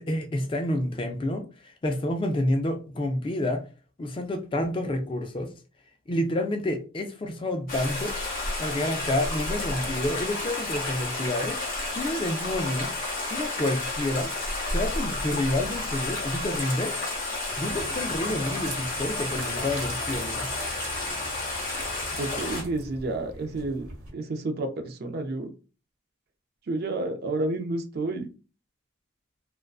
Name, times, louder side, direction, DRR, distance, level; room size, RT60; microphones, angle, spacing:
voice 1, 0.0-3.6 4.0-5.5 6.1-8.1 8.6-11.6 12.0-12.9 13.3-14.3 14.7-17.0 17.6-20.5, left 1 dB, 25° left, 0.3 m, -29 dB
Stream, 7.7-22.6, left 2 dB, 40° left, 1.0 m, -31 dB
sound 1, 17.5-24.1, right 2 dB, 85° right, 1.1 m, -42 dB
voice 2, 22.1-25.5 26.7-28.3, right 2 dB, 50° right, 0.4 m, -30 dB
2.5 x 2.2 x 2.3 m
head